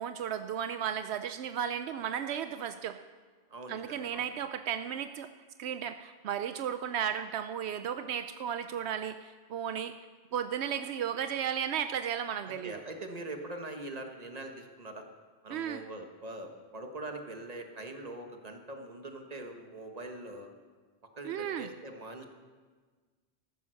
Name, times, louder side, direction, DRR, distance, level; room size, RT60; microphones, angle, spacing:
voice 1, 0.0-3.0 3.7-5.3 5.6-9.9 10.3-12.8 15.5-15.8 21.2-21.7, right 9 dB, 85° right, 9 dB, 0.8 m, -34 dB
voice 2, 3.5-4.2 12.4-15.0 15.4-20.5 21.2-22.3, right 2 dB, 40° right, 4 dB, 1.5 m, -43 dB
14.5 x 10.0 x 6.4 m, 1.5 s
omnidirectional pair, 1.1 m